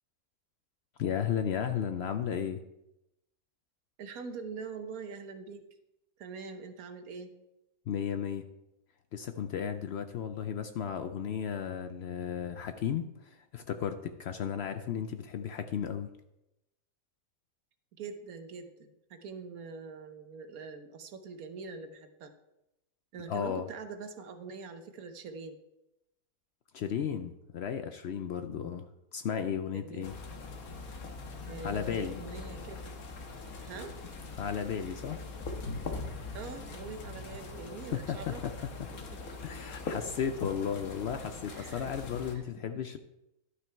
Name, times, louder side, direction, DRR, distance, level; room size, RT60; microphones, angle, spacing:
voice 1, 1.0-2.6 7.9-8.4 9.1-16.1 23.3-23.7 26.7-28.9 29.1-30.2 31.6-32.2 34.4-35.2 37.9-38.5 39.4-43.0, left 8 dB, 65° left, 8 dB, 0.6 m, -34 dB
voice 2, 4.0-5.7 6.2-7.4 18.0-22.3 23.1-25.6 28.4-28.8 29.7-30.1 31.5-33.0 33.6-34.0 36.3-38.4 38.9-39.2 41.5-41.9 42.3-42.4 42.7-42.8, right 4 dB, 85° right, 8 dB, 1.3 m, -44 dB
sound 1, 30.0-42.3, left 3 dB, 85° left, 1.6 m, -42 dB
11.5 x 6.0 x 4.5 m, 0.90 s
omnidirectional pair, 1.5 m